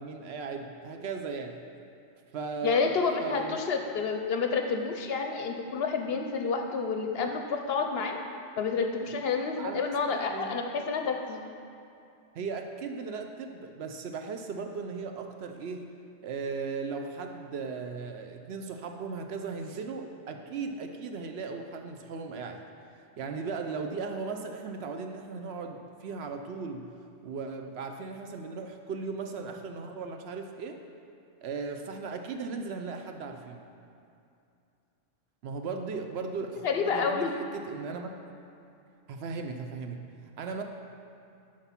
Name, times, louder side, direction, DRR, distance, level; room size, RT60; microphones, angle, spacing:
voice 1, 0.0-1.6 2.3-3.6 9.6-10.5 12.4-15.9 16.2-22.6 23.2-26.9 27.2-30.8 31.4-33.6 35.4-38.1 39.1-40.0 40.4-40.6, right 4 dB, 65° right, 5 dB, 0.8 m, -37 dB
voice 2, 2.6-8.2 8.6-11.4 36.6-37.3, left 5 dB, 65° left, 5 dB, 0.7 m, -29 dB
7.5 x 5.2 x 5.7 m, 2.6 s
omnidirectional pair, 1.3 m